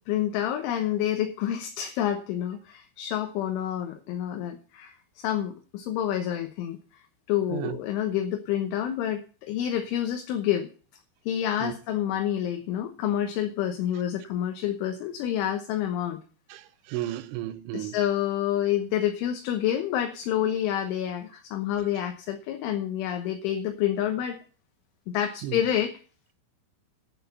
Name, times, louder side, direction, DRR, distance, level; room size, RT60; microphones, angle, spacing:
voice 1, 0.1-6.8 7.3-10.7 11.3-16.2 17.7-24.4 25.1-25.9, left 11 dB, 80° left, 3.5 m, -28 dB
voice 2, 16.9-18.0 25.4-25.6, right 13 dB, 80° right, 3.2 m, -32 dB
11.0 x 6.7 x 8.2 m
omnidirectional pair, 5.7 m